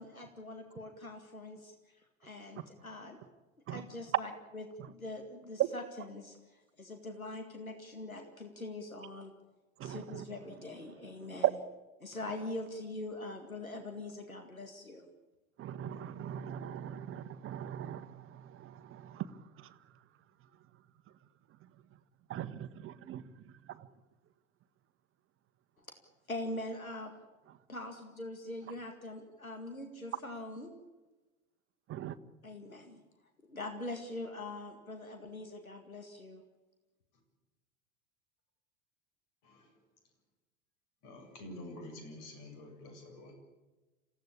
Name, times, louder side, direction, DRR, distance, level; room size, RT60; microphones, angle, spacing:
voice 1, 0.0-3.2 3.7-9.3 9.8-11.6 12.0-15.1 25.8-25.9 26.3-27.1 27.7-30.7 32.4-33.0 33.4-36.4, left 2 dB, 90° left, 5 dB, 2.1 m, -43 dB
voice 2, 15.6-18.2 18.6-19.3 22.3-23.2 31.9-32.1, right 10 dB, 30° right, 11 dB, 1.3 m, -41 dB
voice 3, 41.0-43.3, left 1 dB, 50° left, 5 dB, 7.6 m, -48 dB
27.5 x 16.5 x 8.7 m, 1.2 s
figure-of-eight pair, 80°, 41 cm